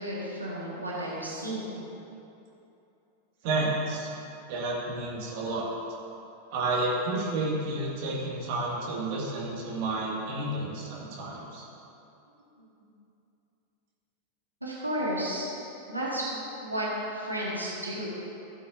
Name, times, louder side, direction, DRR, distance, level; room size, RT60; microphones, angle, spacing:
voice 1, 0.0-1.8 12.8-12.9 14.6-15.5 15.9-18.1, equal, 85° right, -7 dB, 2.1 m, -33 dB
voice 2, 3.4-4.1 4.5-5.7 6.5-11.6, right 2 dB, 50° right, -5 dB, 2.2 m, -30 dB
15.5 x 8.4 x 2.8 m, 2.8 s
figure-of-eight pair, 90°, 0 cm